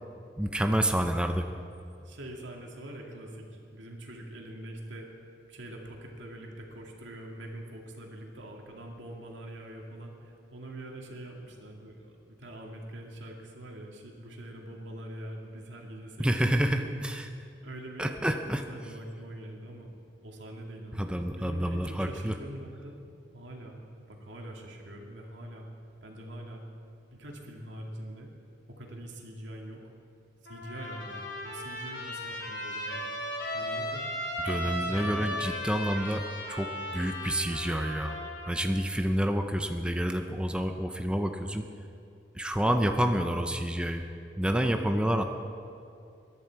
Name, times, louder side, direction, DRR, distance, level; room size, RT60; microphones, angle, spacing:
voice 1, 0.4-1.5 16.2-17.3 18.0-18.6 21.0-22.3 34.4-38.2 38.5-41.6 42.3-44.0 44.4-45.2, equal, 5° right, 5 dB, 0.6 m, -28 dB
voice 2, 2.0-5.1 5.5-16.9 17.6-19.9 20.2-23.0 23.3-23.8 24.1-25.7 26.0-26.6 27.1-28.3 28.7-29.8 30.4-33.1 33.5-34.1 34.5-35.3, right 1 dB, 85° right, 1 dB, 2.2 m, -44 dB
Trumpet, 30.5-38.6, left 1 dB, 90° left, 3.5 m, -36 dB
21.5 x 11.0 x 4.6 m, 2.5 s
head